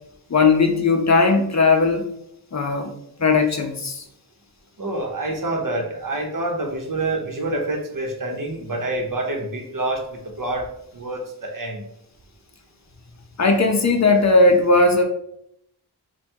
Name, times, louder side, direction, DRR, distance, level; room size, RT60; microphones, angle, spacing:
voice 1, 0.3-2.1 2.5-2.9 3.2-4.0 13.4-15.0, left 3 dB, 45° left, 4 dB, 0.6 m, -17 dB
voice 2, 4.8-10.7 10.9-11.8, right 2 dB, 55° right, 2 dB, 0.9 m, -27 dB
3.5 x 2.3 x 4.4 m, 0.75 s
wide cardioid pair, 65°, 39 cm